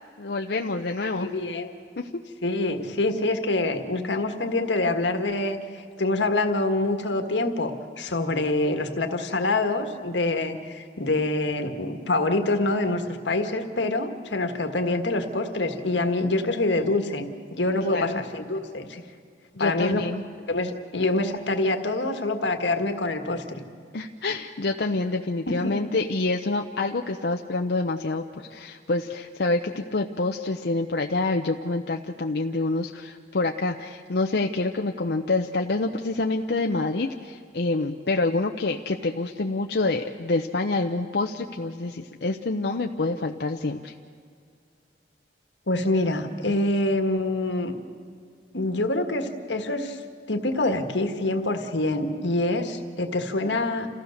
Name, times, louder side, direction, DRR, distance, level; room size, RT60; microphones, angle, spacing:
voice 1, 0.2-1.3 2.0-2.2 17.9-18.2 19.5-20.2 23.9-43.9, left 2 dB, 65° left, 3 dB, 0.7 m, -27 dB
voice 2, 1.1-1.7 2.4-5.6 6.0-19.0 19.6-20.0 20.5-23.6 25.5-25.7 45.7-47.7 48.5-50.0 50.3-53.9, left 2 dB, 90° left, 6 dB, 1.6 m, -26 dB
28.0 x 15.5 x 6.5 m, 2.2 s
head